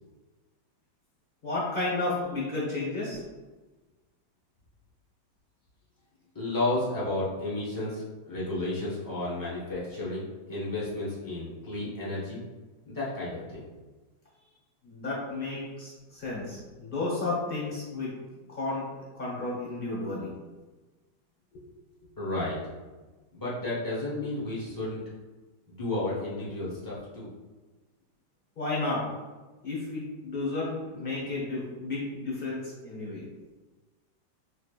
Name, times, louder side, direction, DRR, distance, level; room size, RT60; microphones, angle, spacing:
voice 1, 1.4-3.2 14.8-18.2 18.5-18.9 19.1-20.4 21.5-21.6 28.6-29.0 29.6-33.2, left 2 dB, 35° left, -6 dB, 0.9 m, -32 dB
voice 2, 6.3-12.4 12.9-13.7 22.2-22.6 23.3-25.0 25.7-27.3, left 2 dB, 20° left, -8 dB, 0.6 m, -32 dB
4.2 x 3.2 x 2.4 m, 1.2 s
omnidirectional pair, 2.2 m